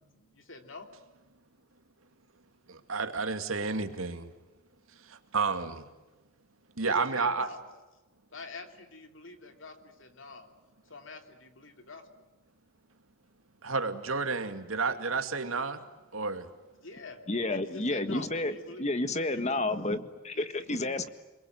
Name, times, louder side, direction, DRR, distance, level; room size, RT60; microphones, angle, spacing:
voice 1, 0.1-0.9 6.8-7.6 8.3-10.5 10.9-12.1 16.8-18.8 19.1-19.6 20.3-21.1, left 3 dB, 65° left, 6 dB, 3.2 m, -47 dB
voice 2, 2.7-4.3 5.0-5.9 6.8-7.5 13.6-15.8 16.1-16.5, right 4 dB, 90° right, 7 dB, 2.4 m, -31 dB
voice 3, 17.3-21.1, left 2 dB, 35° left, 10 dB, 1.6 m, -31 dB
29.0 x 22.0 x 9.3 m, 1.1 s
head